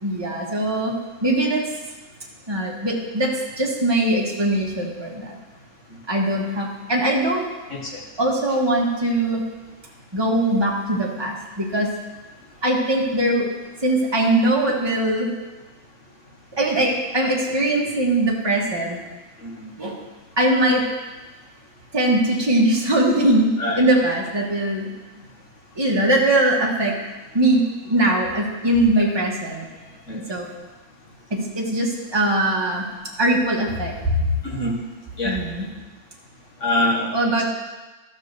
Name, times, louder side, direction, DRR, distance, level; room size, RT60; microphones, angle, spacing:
voice 1, 0.0-1.6 2.5-3.3 3.6-5.3 6.1-7.4 8.2-9.4 10.1-11.9 12.6-13.5 13.8-15.3 16.6-19.0 19.8-19.9 20.4-20.9 21.9-23.5 23.8-24.9 25.8-27.0 27.3-29.7 30.3-30.5 31.3-32.8 33.2-34.1 35.2-35.6 37.1-37.4, right 1 dB, 15° right, -3 dB, 1.5 m, -21 dB
voice 2, 7.7-8.0 19.4-19.7 23.6-23.9 30.1-30.2 34.4-34.8 35.2-35.4 36.6-37.1, left 1 dB, 55° left, -3 dB, 2.0 m, -24 dB
12.5 x 4.4 x 6.7 m, 1.2 s
omnidirectional pair, 1.6 m